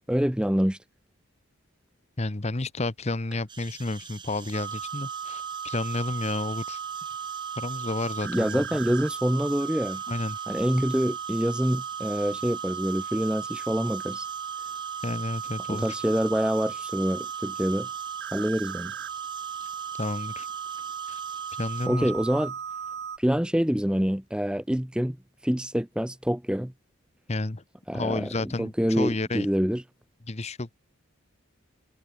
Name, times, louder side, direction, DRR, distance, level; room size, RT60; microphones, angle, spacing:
voice 1, 0.1-0.8 8.2-10.0 10.5-14.3 15.7-17.9 18.3-18.9 21.9-22.5 23.2-25.2 25.4-26.7 27.9-28.3 28.6-29.8, equal, 5° right, 0.6 m, -26 dB
voice 2, 2.2-6.8 7.6-8.7 10.1-10.4 15.0-16.0 20.0-20.5 21.1-21.2 21.6-22.1 27.3-27.6 27.9-29.5 30.3-30.8, left 2 dB, 30° left, 0.9 m, -31 dB
sound 1, 3.5-21.9, right 6 dB, 20° right, 1.6 m, -46 dB
sound 2, 4.5-23.2, right 7 dB, 50° right, 0.7 m, -36 dB
head